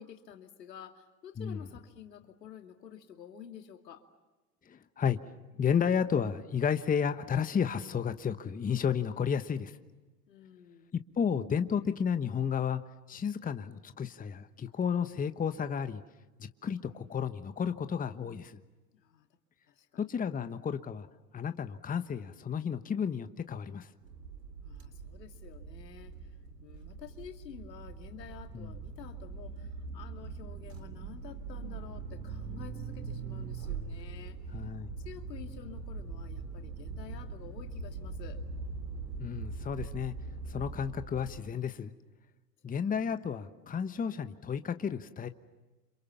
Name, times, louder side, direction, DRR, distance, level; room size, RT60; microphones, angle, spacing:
voice 1, 0.0-4.0 10.3-10.9 18.9-19.3 19.7-20.2 24.6-26.2 26.6-34.4 35.0-38.4, left 9 dB, 80° left, 6 dB, 2.8 m, -50 dB
voice 2, 4.7-5.2 5.6-9.7 11.2-12.8 13.1-16.0 16.4-18.6 20.0-21.1 21.3-23.9 28.5-28.7 34.5-34.9 39.2-40.1 40.5-41.9 42.6-45.3, left 7 dB, 15° left, 10 dB, 1.2 m, -32 dB
sound 1, 24.0-41.4, right 4 dB, 80° right, 3.7 m, -42 dB
29.0 x 27.0 x 7.2 m, 1.2 s
hypercardioid pair, 100°, 48 cm